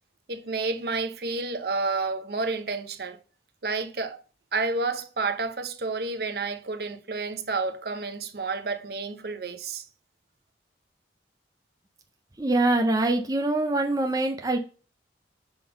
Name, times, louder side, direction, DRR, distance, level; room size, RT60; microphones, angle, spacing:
voice 1, 0.3-3.2 3.6-4.2 4.5-9.8, right 3 dB, 60° right, 0.7 m, -30 dB
voice 2, 12.4-14.6, right 2 dB, 20° right, 0.5 m, -24 dB
5.5 x 3.8 x 5.6 m
head